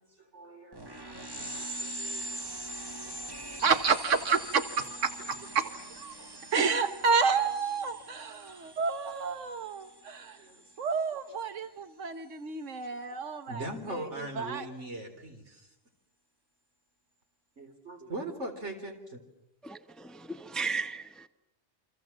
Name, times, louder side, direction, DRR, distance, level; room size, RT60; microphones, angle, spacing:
voice 1, 0.0-2.3 6.2-6.4 10.2-10.6 13.5-15.7 17.6-19.2, right 1 dB, 70° right, 5 dB, 4.3 m, -41 dB
sound 1, 0.7-10.9, right 1 dB, 20° right, 1.4 m, -42 dB
voice 2, 3.6-6.2 6.5-10.4 10.8-14.7, right 5 dB, 90° right, 9 dB, 1.5 m, -30 dB
voice 3, 19.6-21.3, right 4 dB, ahead, 10 dB, 0.9 m, -36 dB
29.0 x 25.5 x 7.4 m, 0.87 s
omnidirectional pair, 1.2 m